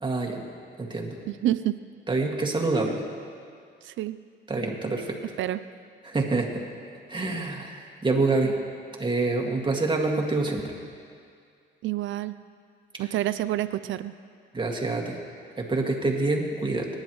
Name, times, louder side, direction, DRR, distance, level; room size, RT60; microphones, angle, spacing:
voice 1, 0.0-0.4 0.8-1.2 2.1-3.0 4.5-5.2 6.0-6.6 7.1-8.6 9.0-10.7 14.5-15.2 15.6-16.9, right 3 dB, 25° right, 0 dB, 2.0 m, -26 dB
voice 2, 1.3-1.8 3.8-4.2 5.4-5.6 11.8-12.3 13.0-14.1, right 13 dB, 75° right, 13 dB, 0.5 m, -28 dB
26.0 x 10.5 x 3.1 m, 2.2 s
cardioid pair, 90°, 20 cm